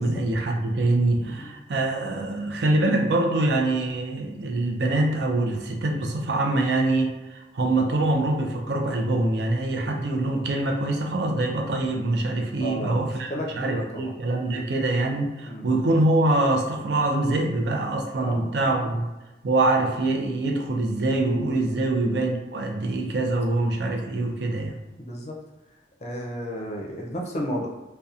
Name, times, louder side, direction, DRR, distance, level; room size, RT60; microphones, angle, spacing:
voice 1, 0.0-19.0 19.4-24.8, right 2 dB, 70° right, 2 dB, 0.5 m, -24 dB
voice 2, 12.6-14.7 15.4-15.7 18.2-18.9 21.6-21.9 25.0-25.3 26.0-27.7, equal, 40° left, -1 dB, 0.5 m, -34 dB
2.7 x 2.1 x 2.4 m, 1.1 s
head